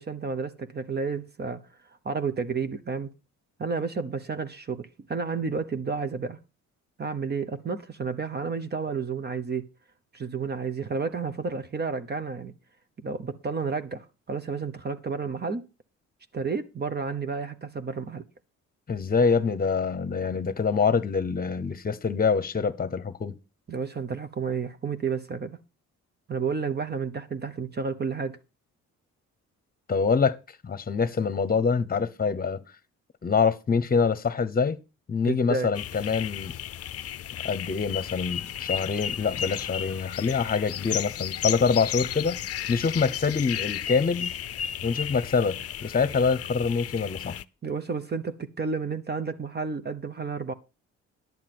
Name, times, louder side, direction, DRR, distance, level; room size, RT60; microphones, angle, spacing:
voice 1, 0.0-1.6 2.0-3.1 3.6-6.4 7.0-9.7 10.1-12.5 13.0-15.7 16.3-18.3 23.7-25.6 26.3-28.4 35.2-35.7 47.6-50.5, right 5 dB, 35° right, 1.1 m, -31 dB
voice 2, 18.9-23.4 29.9-30.4 30.6-32.6 33.2-34.8 35.1-36.5 37.4-42.4 42.7-44.3 44.8-47.4, left 5 dB, 30° left, 1.0 m, -25 dB
sound 1, 35.7-47.4, left 10 dB, 50° left, 0.6 m, -34 dB
11.0 x 7.3 x 6.1 m
cardioid pair, 90°, 30 cm